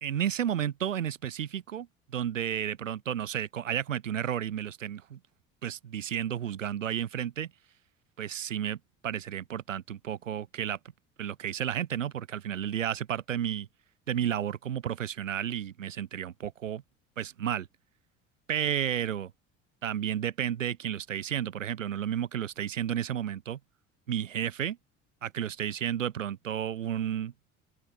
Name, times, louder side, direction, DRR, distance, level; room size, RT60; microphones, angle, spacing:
voice 1, 0.0-5.2 5.6-7.5 8.2-8.8 9.0-10.8 11.2-13.7 14.1-16.8 17.2-17.7 18.5-19.3 19.8-23.6 24.1-24.8 25.2-27.3, right 10 dB, 85° right, 1.7 m, -32 dB
open air
hypercardioid pair, 60°, 37 cm